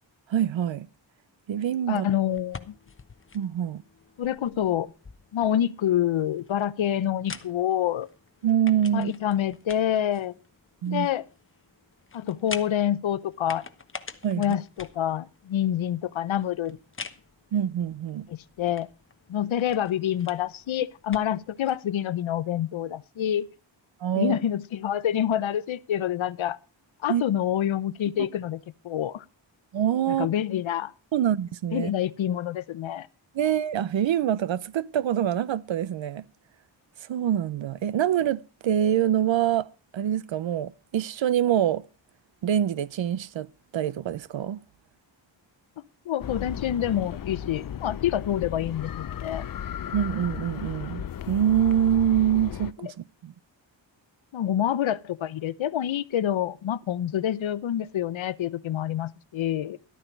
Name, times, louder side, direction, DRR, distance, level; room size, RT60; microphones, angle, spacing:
voice 1, 0.3-0.9 1.5-2.1 3.3-3.8 8.4-9.1 10.8-11.1 14.2-14.5 17.5-18.3 24.0-24.4 27.1-27.2 29.7-30.3 31.1-31.9 33.3-36.2 37.1-39.7 39.9-41.8 42.4-43.5 43.7-44.6 49.9-53.3, right 10 dB, 75° right, 0.7 m, -25 dB
voice 2, 1.9-2.7 4.2-4.9 5.3-8.1 8.9-10.3 10.9-11.2 12.1-13.6 14.3-16.8 18.3-18.9 19.3-23.5 24.1-26.6 27.0-29.2 30.1-30.9 31.7-33.1 46.1-49.4 52.8-52.9 54.3-59.8, left 10 dB, 80° left, 0.8 m, -27 dB
sound 1, 2.3-21.8, left 4 dB, 25° left, 1.0 m, -46 dB
sound 2, 46.2-52.7, left 9 dB, 50° left, 0.6 m, -35 dB
13.0 x 12.5 x 4.5 m
wide cardioid pair, 95°, 46 cm